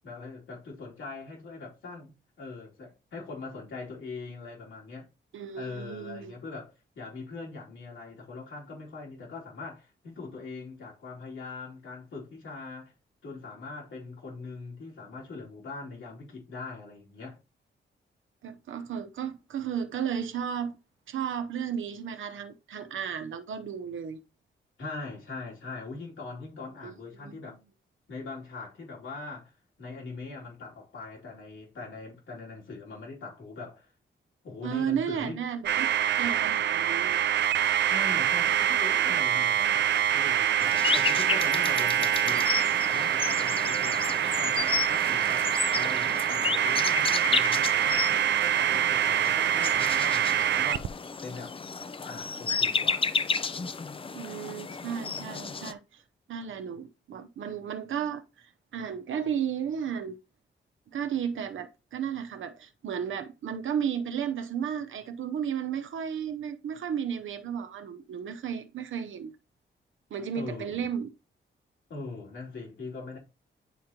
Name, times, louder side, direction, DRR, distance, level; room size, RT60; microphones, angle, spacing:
voice 1, 0.0-2.1 2.4-5.1 5.6-12.9 13.2-17.4 24.8-27.6 28.1-29.5 29.8-33.9 34.4-35.4 37.8-42.5 42.9-48.1 48.4-50.9 51.2-51.6 52.1-53.1 70.3-70.8 71.9-73.2, left 3 dB, 80° left, 2.8 m, -41 dB
voice 2, 5.3-6.4 18.4-20.8 21.1-24.2 26.8-27.5 34.6-37.2 54.1-56.0 56.3-60.2 60.9-69.3 70.1-71.1, right 8 dB, 80° right, 0.8 m, -34 dB
sound 1, 35.6-50.9, right 10 dB, 65° right, 0.4 m, -25 dB
sound 2, 40.6-55.7, left 5 dB, 30° left, 0.4 m, -32 dB
9.9 x 3.7 x 2.9 m
cardioid pair, 80°, 20 cm